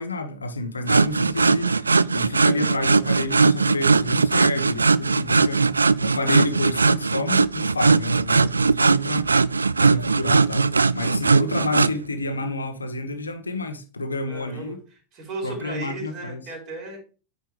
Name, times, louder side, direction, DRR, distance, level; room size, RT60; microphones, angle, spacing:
voice 1, 0.0-5.7 6.0-9.2 9.8-14.8 15.4-16.4, left 2 dB, 75° left, 1.2 m, -29 dB
sound 1, 0.9-11.9, right 4 dB, 75° right, 0.3 m, -19 dB
voice 2, 14.3-14.8 15.1-17.0, right 2 dB, 35° right, 4.5 m, -35 dB
9.2 x 6.5 x 3.2 m
figure-of-eight pair, 90°, 0 cm